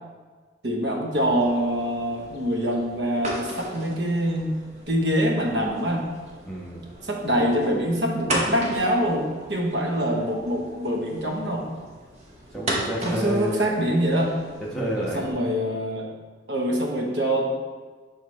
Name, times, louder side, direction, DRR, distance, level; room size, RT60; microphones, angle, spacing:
voice 1, 0.6-4.5 4.9-6.0 7.0-11.7 13.0-14.3 15.1-16.1 16.5-17.5, equal, 65° right, 0 dB, 1.0 m, -24 dB
sound 1, 1.1-15.3, right 1 dB, 35° right, 0.9 m, -36 dB
voice 2, 6.4-6.8 12.5-13.6 14.6-15.5, right 1 dB, 5° left, -6 dB, 1.1 m, -29 dB
6.2 x 3.9 x 4.2 m, 1.4 s
head